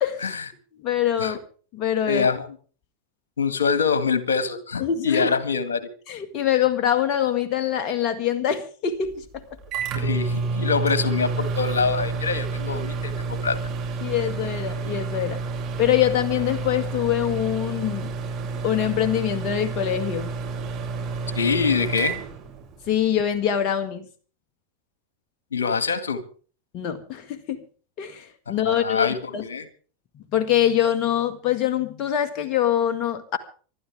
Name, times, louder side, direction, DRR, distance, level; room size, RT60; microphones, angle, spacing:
voice 1, 0.0-0.3 0.8-1.4 1.7-2.3 4.8-5.3 6.1-9.2 14.0-15.4 15.8-18.1 18.6-20.3 22.9-24.1 26.7-27.6 28.0-29.4 30.3-33.4, left 10 dB, 45° left, 8 dB, 1.8 m, -24 dB
voice 2, 2.1-2.5 3.4-5.9 9.9-13.6 21.3-22.2 25.5-26.2 28.5-29.7, left 5 dB, 85° left, 11 dB, 1.9 m, -24 dB
Microwave oven, 9.0-23.1, right 4 dB, 45° right, 6.9 m, -29 dB
26.0 x 12.5 x 3.6 m, 0.40 s
hypercardioid pair, 95°, 0 cm